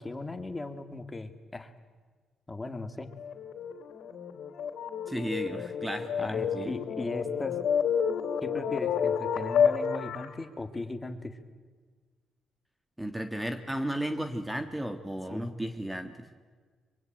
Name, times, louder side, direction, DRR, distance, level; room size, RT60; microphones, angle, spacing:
voice 1, 0.0-1.7 2.5-3.1 6.2-7.6 8.4-11.4 15.3-15.5, left 2 dB, 20° left, 8 dB, 2.1 m, -38 dB
sound 1, 3.0-10.3, left 7 dB, 75° left, 2.9 m, -30 dB
voice 2, 5.1-6.7 13.0-16.3, right 1 dB, 5° right, 8 dB, 1.5 m, -34 dB
23.5 x 23.0 x 9.0 m, 1.5 s
cardioid pair, 90°, 0 cm